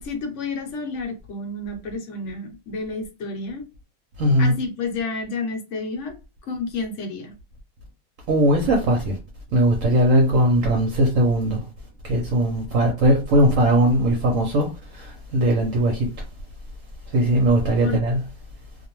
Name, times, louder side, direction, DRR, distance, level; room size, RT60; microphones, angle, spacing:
voice 1, 0.0-3.6 4.4-6.1 6.5-7.3 17.7-18.0, left 3 dB, 60° left, 0.9 m, -30 dB
voice 2, 4.2-4.5 8.3-9.2 9.5-11.6 12.0-14.7 14.9-16.1 17.1-18.2, right 1 dB, 65° right, 0.9 m, -19 dB
2.5 x 2.0 x 2.9 m
omnidirectional pair, 1.5 m